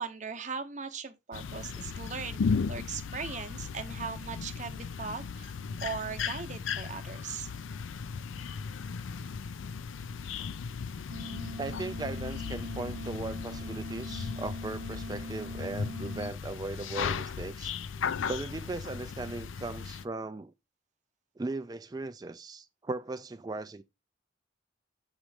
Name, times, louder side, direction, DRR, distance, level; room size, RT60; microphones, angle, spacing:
voice 1, 0.0-2.4 2.7-7.5, right 5 dB, 35° right, 0.8 m, -39 dB
sound 1, 1.3-20.0, left 5 dB, 80° left, 0.4 m, -36 dB
sound 2, 11.1-16.3, equal, 90° right, 0.8 m, -42 dB
voice 2, 11.6-17.7 18.3-20.5 21.4-23.8, right 3 dB, 20° right, 0.3 m, -38 dB
7.3 x 3.1 x 4.9 m
head